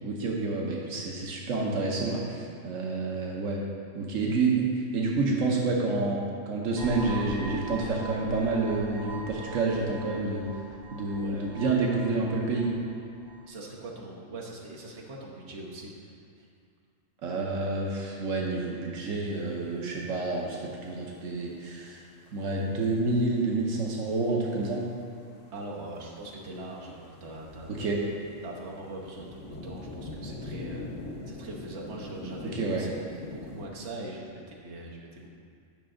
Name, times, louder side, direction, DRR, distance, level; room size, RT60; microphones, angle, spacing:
voice 1, 0.0-3.6 3.9-10.5 10.9-12.7 17.2-22.0 22.3-24.8 27.8-28.0 32.4-32.8, right 3 dB, 85° right, -2 dB, 1.2 m, -28 dB
sound 1, 6.8-13.5, right 2 dB, 35° right, 0.4 m, -42 dB
voice 2, 11.1-11.5 13.5-16.5 25.5-27.9 28.4-30.9 31.3-35.3, right 2 dB, 60° right, -3 dB, 1.3 m, -42 dB
sound 2, 19.4-19.5 20.1-20.2 20.5-21.1 21.6-33.7, left 2 dB, 70° left, 1.4 m, -43 dB
8.6 x 5.9 x 3.7 m, 2.3 s
omnidirectional pair, 1.3 m